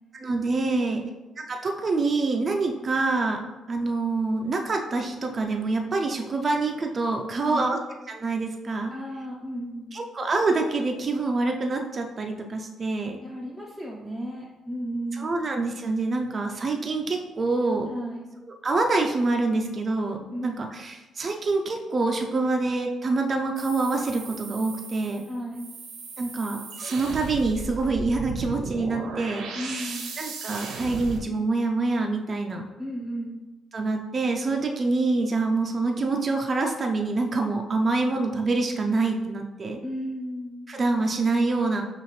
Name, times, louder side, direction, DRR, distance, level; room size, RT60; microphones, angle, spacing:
voice 1, 0.1-1.0 1.4-3.4 3.7-7.8 8.1-8.9 9.9-13.2 15.1-17.9 18.5-25.2 26.2-32.7 33.7-39.8 40.7-41.8, right 3 dB, 40° right, 2 dB, 0.4 m, -26 dB
voice 2, 0.7-1.1 7.3-7.7 8.9-10.0 13.2-15.4 17.9-18.3 20.3-20.6 25.2-25.7 29.5-30.1 32.8-33.5 39.8-40.6, equal, 5° left, -4 dB, 0.6 m, -34 dB
sound 1, 23.6-31.2, right 3 dB, 80° right, 0.7 m, -37 dB
5.5 x 2.4 x 3.1 m, 1.1 s
cardioid pair, 90°, 0 cm